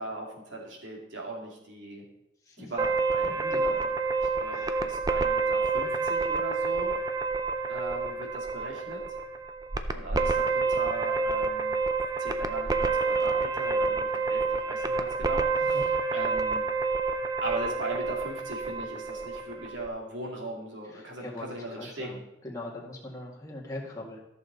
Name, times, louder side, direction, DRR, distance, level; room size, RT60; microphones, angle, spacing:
voice 1, 0.0-2.1 2.6-3.9 4.2-6.9 7.7-9.0 9.9-11.8 12.2-16.7 17.4-22.2, right 1 dB, 75° right, -1 dB, 2.5 m, -39 dB
sound 1, 2.8-19.9, right 4 dB, 20° right, 0.4 m, -28 dB
voice 2, 3.4-3.8 4.5-4.9 15.7-15.8 20.9-22.2 22.4-24.2, left 1 dB, 20° left, -4 dB, 2.0 m, -41 dB
13.5 x 6.9 x 4.0 m, 0.83 s
head